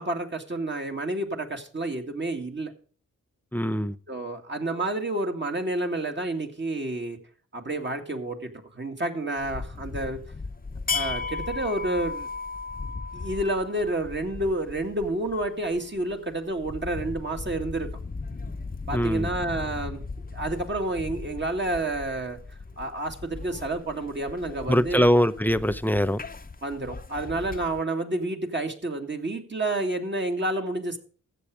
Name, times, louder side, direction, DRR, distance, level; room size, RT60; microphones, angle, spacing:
voice 1, 0.0-2.7 4.1-7.2 7.5-10.2 10.9-12.3 13.1-17.9 18.9-20.0 20.3-22.4 22.8-25.2 26.6-31.0, right 2 dB, 35° right, 2.2 m, -29 dB
voice 2, 3.5-3.9 18.9-19.3 24.7-26.2, equal, 5° left, 0.7 m, -22 dB
sound 1, 9.4-27.8, left 4 dB, 25° left, 0.9 m, -37 dB
14.5 x 8.1 x 4.9 m
cardioid pair, 75°, 33 cm